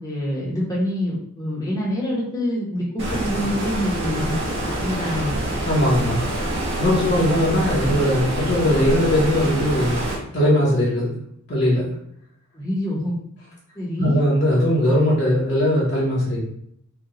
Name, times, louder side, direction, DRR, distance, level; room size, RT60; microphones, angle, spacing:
voice 1, 0.0-4.4 4.8-5.4 12.5-13.2 13.7-14.2, left 1 dB, 15° left, -6 dB, 0.9 m, -26 dB
Stream, 3.0-10.2, right 1 dB, 55° right, 1.1 m, -26 dB
voice 2, 5.7-6.2 6.8-10.0 10.3-11.2 11.5-11.9 14.0-16.4, equal, 50° left, -7 dB, 1.0 m, -19 dB
4.8 x 2.3 x 3.0 m, 0.70 s
head